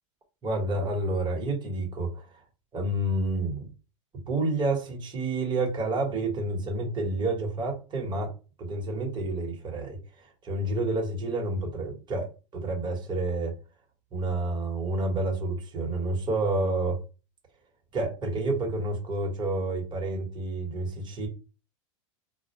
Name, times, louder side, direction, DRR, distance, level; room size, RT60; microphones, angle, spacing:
voice 1, 0.4-2.4 2.7-3.7 4.3-8.3 8.6-13.6 14.1-17.0 17.9-21.3, right 2 dB, 25° right, 1 dB, 1.1 m, -29 dB
2.2 x 2.1 x 2.9 m, 0.31 s
hypercardioid pair, 110°, 17 cm